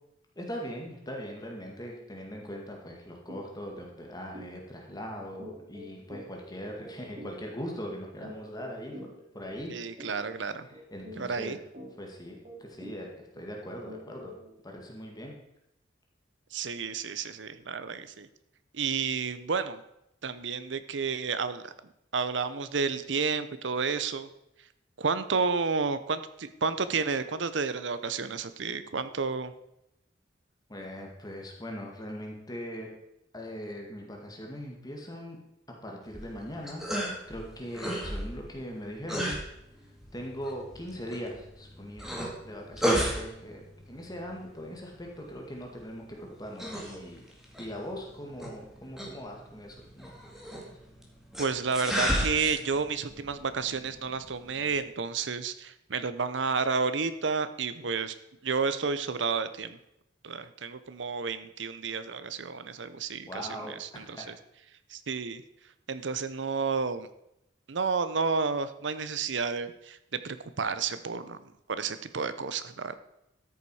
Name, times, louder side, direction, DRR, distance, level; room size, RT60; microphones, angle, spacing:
voice 1, 0.4-10.1 10.7-11.6 12.0-14.3 14.6-15.4 30.7-32.9 33.3-35.4 35.7-36.9 37.3-39.4 40.1-47.2 47.6-50.1 50.6-50.7 63.3-63.8 64.1-64.3, equal, 20° left, 0 dB, 2.0 m, -40 dB
sound 1, 3.3-3.5 3.8-4.0 4.3-14.6, equal, 40° right, 2.4 m, -48 dB
voice 2, 9.7-10.7 11.2-11.6 16.5-18.3 18.7-19.8 20.2-21.7 22.1-24.3 25.0-29.5 51.4-58.1 58.4-59.8 60.2-63.3 63.7-64.2 64.9-65.4 65.9-67.1 67.7-71.4 71.7-73.0, right 5 dB, 75° right, 12 dB, 0.7 m, -31 dB
sound 2, 36.0-54.8, equal, ahead, 2.0 m, -35 dB
13.5 x 7.0 x 4.8 m, 0.81 s
head